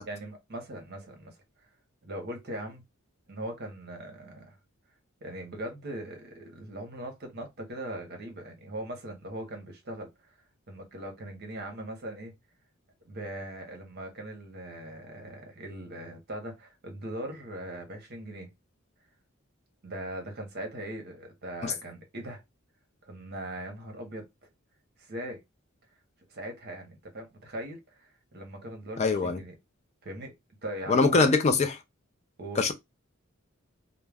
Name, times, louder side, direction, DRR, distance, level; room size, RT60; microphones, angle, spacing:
voice 1, 0.0-1.4 2.0-2.8 3.3-4.6 5.2-10.3 10.7-12.3 13.0-18.5 19.8-22.4 23.0-24.2 25.0-25.4 26.3-29.5 30.0-30.3 30.6-31.4 32.4-32.6, right 1 dB, 50° right, 0.8 m, -40 dB
voice 2, 29.0-29.4 30.9-31.7 32.6-32.7, left 4 dB, 30° left, 0.3 m, -23 dB
2.2 x 2.1 x 3.3 m
head